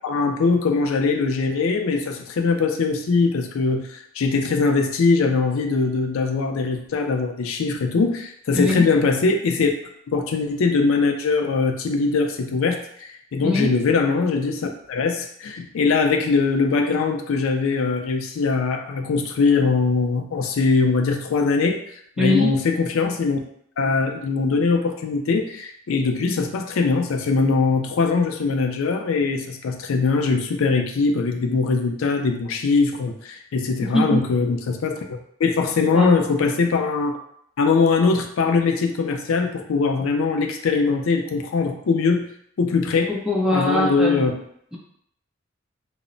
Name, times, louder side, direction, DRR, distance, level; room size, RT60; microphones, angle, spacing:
voice 1, 0.0-9.7 10.1-21.8 22.2-23.4 23.8-37.2 37.6-42.2 42.6-43.1 43.5-44.3, left 4 dB, 85° left, 4 dB, 0.4 m, -21 dB
voice 2, 22.2-22.5 33.8-34.2 35.9-36.2 43.1-44.4, left 1 dB, ahead, -4 dB, 0.4 m, -22 dB
2.0 x 2.0 x 3.7 m, 0.70 s
head